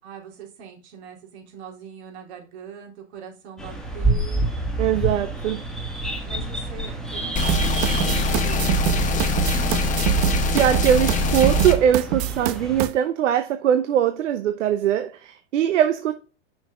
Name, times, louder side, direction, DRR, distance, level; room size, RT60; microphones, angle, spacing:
voice 1, 0.0-4.5 6.2-10.0, right 6 dB, 60° right, 3.3 m, -42 dB
sound 1, 3.6-12.9, right 2 dB, ahead, 1.6 m, -29 dB
voice 2, 4.8-5.6 10.2-16.1, right 10 dB, 75° right, 0.9 m, -21 dB
sound 2, 7.4-11.8, left 3 dB, 20° left, 1.2 m, -23 dB
sound 3, 7.5-12.9, right 16 dB, 35° right, 0.4 m, -25 dB
6.2 x 6.2 x 3.7 m
hypercardioid pair, 120°, 37 cm